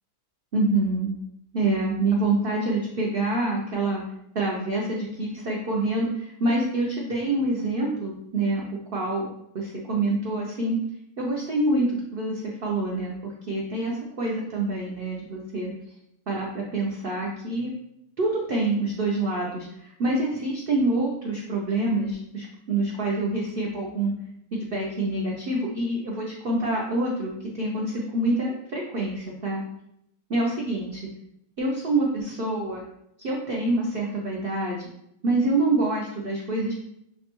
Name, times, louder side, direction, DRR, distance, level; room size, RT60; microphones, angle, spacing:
voice 1, 0.5-1.1 1.5-4.0 4.3-8.6 8.9-9.3 9.5-10.8 11.2-15.7 16.3-17.7 18.2-24.1 24.5-29.6 30.3-31.0 31.6-32.8 33.2-34.9 35.2-36.7, right 2 dB, 70° right, -3 dB, 0.5 m, -26 dB
5.8 x 2.2 x 2.9 m, 0.78 s
omnidirectional pair, 1.7 m